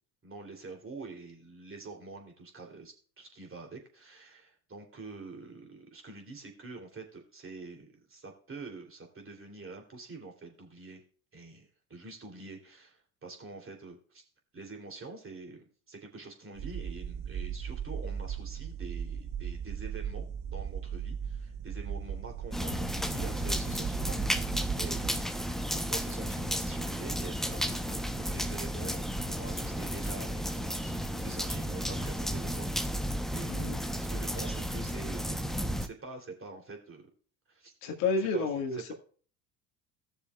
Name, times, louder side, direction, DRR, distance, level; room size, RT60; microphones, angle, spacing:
voice 1, 0.2-11.0 11.3-14.2 14.5-24.5 24.7-25.3 25.7-29.1 29.4-37.1 37.5-37.7 38.2-38.5, right 3 dB, 30° right, 2 dB, 3.0 m, -46 dB
sound 1, 16.6-25.1, right 8 dB, 50° right, 1.2 m, -37 dB
sound 2, 22.5-35.9, equal, ahead, 0.8 m, -33 dB
voice 2, 37.8-38.9, left 4 dB, 75° left, 3 dB, 1.9 m, -30 dB
16.5 x 6.8 x 2.3 m, 0.41 s
hypercardioid pair, 65°, 42 cm